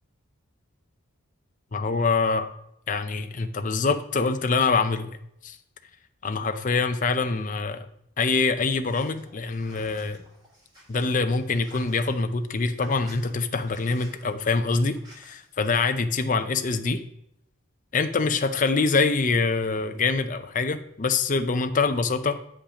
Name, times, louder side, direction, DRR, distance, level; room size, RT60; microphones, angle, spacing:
voice 1, 1.7-2.5 2.9-5.1 5.4-5.6 6.2-7.9 8.2-10.2 10.9-17.0 17.9-22.4, left 4 dB, 35° left, 9 dB, 0.5 m, -25 dB
sound 1, 8.9-15.8, equal, 20° right, 3.4 m, -53 dB
8.5 x 5.3 x 5.0 m, 0.77 s
head